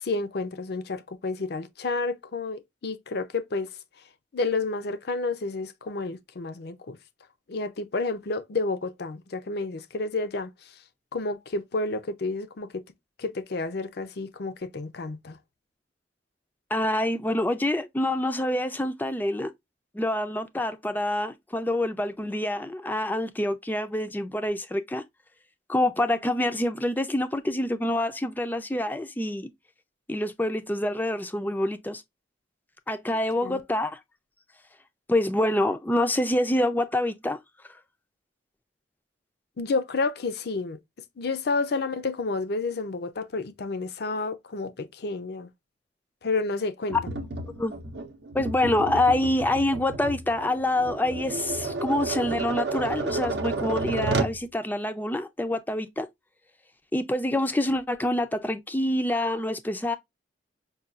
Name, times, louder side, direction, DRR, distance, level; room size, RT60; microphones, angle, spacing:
voice 1, 0.0-3.7 4.3-7.0 7.5-10.5 11.1-12.8 13.2-15.4 33.4-33.6 39.6-40.8 41.2-45.5 46.2-47.0, left 3 dB, 60° left, 0.5 m, -30 dB
voice 2, 16.7-19.5 19.9-25.0 25.7-29.5 30.1-32.0 32.9-34.0 35.1-37.4 46.9-47.0 47.6-47.7 48.3-56.1 56.9-60.0, left 1 dB, 10° left, 0.4 m, -26 dB
Tap, 46.9-54.4, right 3 dB, 60° right, 0.6 m, -31 dB
5.4 x 2.3 x 2.4 m
head